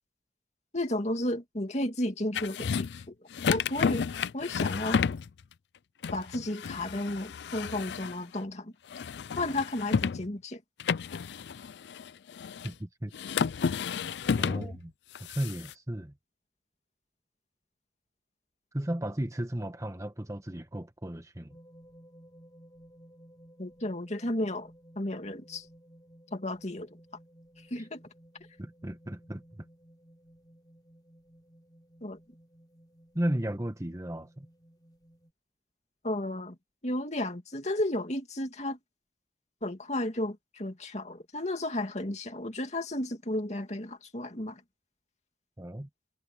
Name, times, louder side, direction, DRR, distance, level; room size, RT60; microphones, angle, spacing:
voice 1, 0.7-3.1 3.5-4.1 4.3-5.0 6.1-8.7 9.4-10.6 14.5-14.8 23.6-24.7 25.0-25.6 26.3-26.9 27.7-28.0 32.0-32.2 36.0-36.6 36.8-38.8 39.6-44.6, left 1 dB, 40° left, 2.5 m, -33 dB
sound 1, 2.3-3.1 3.3-5.3 6.0-8.4 8.9-10.3 10.8-12.7 13.1-14.8 15.1-15.7, left 6 dB, 75° left, 0.4 m, -31 dB
voice 2, 12.6-13.1 14.4-14.9 15.2-16.1 18.7-21.6 28.6-29.7 33.1-34.5 45.6-45.9, right 1 dB, 20° right, 1.2 m, -34 dB
sound 2, 21.5-35.3, equal, 25° left, 5.9 m, -57 dB
head